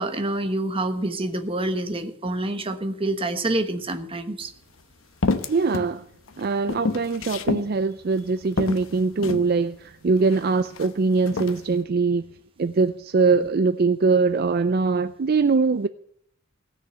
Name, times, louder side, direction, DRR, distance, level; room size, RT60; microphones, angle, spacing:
voice 1, 0.0-4.5, right 2 dB, 25° right, 1.1 m, -27 dB
sound 1, 4.4-4.5 5.2-5.9 6.3-7.7 8.1-8.2 8.6-9.5 10.2-10.9 11.2-11.6, left 3 dB, 85° left, 1.0 m, -28 dB
voice 2, 5.5-6.0 6.4-12.3 12.6-15.9, right 4 dB, 50° right, 0.4 m, -22 dB
17.0 x 6.5 x 9.0 m
head